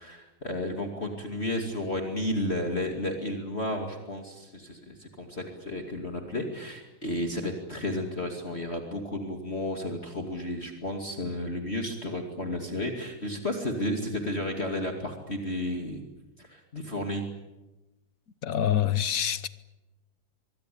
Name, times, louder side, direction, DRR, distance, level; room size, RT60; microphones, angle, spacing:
voice 1, 0.0-16.0 16.4-17.3, left 1 dB, 30° left, 2.7 m, -32 dB
voice 2, 18.4-19.5, left 10 dB, 50° left, 1.3 m, -26 dB
24.0 x 23.0 x 8.6 m
omnidirectional pair, 2.2 m